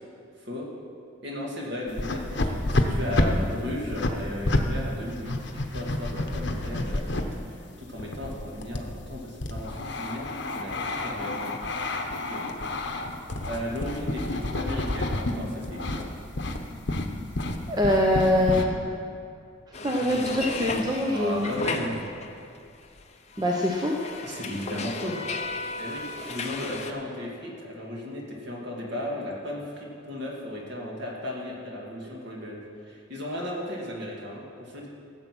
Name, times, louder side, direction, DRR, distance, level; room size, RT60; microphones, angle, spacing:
voice 1, 1.2-10.3 10.5-11.5 12.1-12.4 13.5-16.1 21.1-22.1 24.2-25.2 25.8-34.9, left 1 dB, 55° right, -2 dB, 2.3 m, -35 dB
sound 1, 1.9-4.7 5.0-7.2 7.9-15.4 15.6-16.1 16.4-16.6 16.9-18.6, left 2 dB, 55° left, 0.9 m, -29 dB
voice 2, 17.7-18.7 19.7-21.5 23.4-23.9, left 1 dB, 20° right, -1 dB, 0.7 m, -24 dB
sound 2, 19.7-22.6 22.8-26.9, left 3 dB, 30° left, 0.7 m, -35 dB
14.5 x 7.9 x 6.1 m, 2.4 s
head